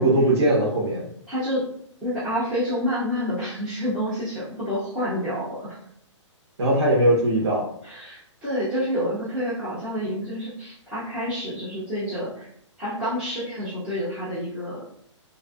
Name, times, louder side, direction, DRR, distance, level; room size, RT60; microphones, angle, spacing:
voice 1, 0.0-1.1 6.6-7.6, right 1 dB, 55° right, -4 dB, 1.0 m, -20 dB
voice 2, 1.3-1.6 2.0-5.8 7.8-12.5 12.8-14.8, equal, 5° right, -13 dB, 0.5 m, -28 dB
2.4 x 2.4 x 2.3 m, 0.67 s
hypercardioid pair, 165°, 16 cm